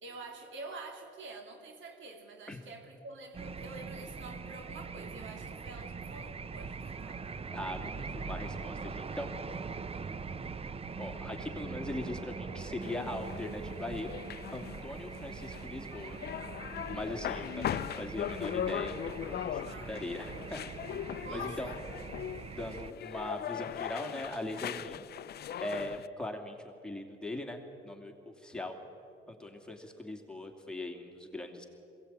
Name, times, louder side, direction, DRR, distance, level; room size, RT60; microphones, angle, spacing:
voice 1, 0.0-7.3 19.6-20.1 21.2-21.8, right 3 dB, 75° right, 4 dB, 2.9 m, -47 dB
sound 1, 3.3-22.9, right 5 dB, 30° right, 0.8 m, -42 dB
voice 2, 7.5-9.3 11.0-14.1 14.5-16.2 16.9-20.6 21.3-21.7 22.6-25.0 25.5-26.6 26.8-28.8 29.3-31.6, left 1 dB, 5° left, 2 dB, 2.8 m, -40 dB
sound 2, 12.8-26.1, left 10 dB, 55° left, 0.5 m, -40 dB
21.5 x 17.5 x 8.9 m, 2.7 s
cardioid pair, 90°, 20 cm